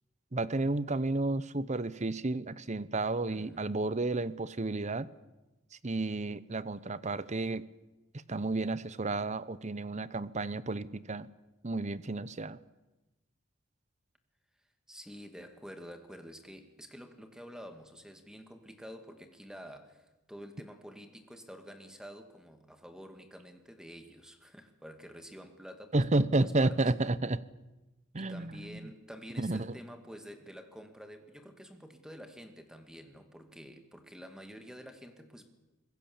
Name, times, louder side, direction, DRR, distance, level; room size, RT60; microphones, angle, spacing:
voice 1, 0.3-5.1 5.8-7.6 8.3-11.3 11.6-12.6 25.9-27.4 28.1-28.8 29.4-29.7, right 2 dB, 35° right, 17 dB, 0.8 m, -31 dB
voice 2, 3.3-3.8 14.9-26.9 28.2-35.5, equal, 5° right, 6 dB, 2.2 m, -49 dB
26.0 x 21.5 x 7.3 m, 1.0 s
head